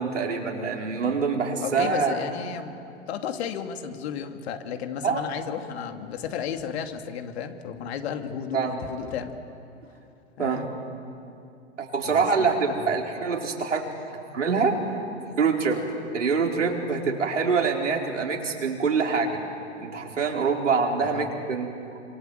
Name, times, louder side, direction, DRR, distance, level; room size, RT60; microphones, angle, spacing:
voice 1, 0.0-2.2 5.0-5.2 8.5-8.8 10.4-10.7 11.8-14.8 15.4-19.4 19.8-22.0, right 5 dB, 85° right, 0 dB, 4.7 m, -25 dB
voice 2, 1.6-9.3 10.4-10.7 12.1-12.9 21.0-21.3, left 7 dB, 60° left, 6 dB, 2.7 m, -34 dB
28.0 x 26.0 x 8.0 m, 2.6 s
hypercardioid pair, 105°, 36 cm